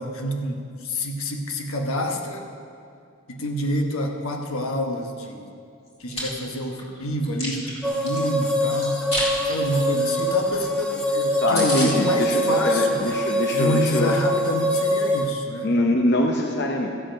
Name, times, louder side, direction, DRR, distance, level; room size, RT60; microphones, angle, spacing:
voice 1, 0.0-2.4 3.3-5.5 6.0-9.0 9.4-13.0 13.5-15.7, equal, 85° left, 3 dB, 1.2 m, -27 dB
Chewing mastication, 5.9-6.2 6.7-8.2 8.8-9.3 9.6-9.8 10.2-10.3 10.5-10.6 11.0-11.1 11.2-11.3 11.5-11.9, left 1 dB, 30° left, 2.2 m, -29 dB
sound 1, 7.8-15.3, equal, 5° left, 0.8 m, -24 dB
voice 2, 11.4-14.1 15.6-17.0, left 1 dB, 50° left, 2 dB, 0.7 m, -23 dB
13.5 x 7.8 x 5.3 m, 2.4 s
head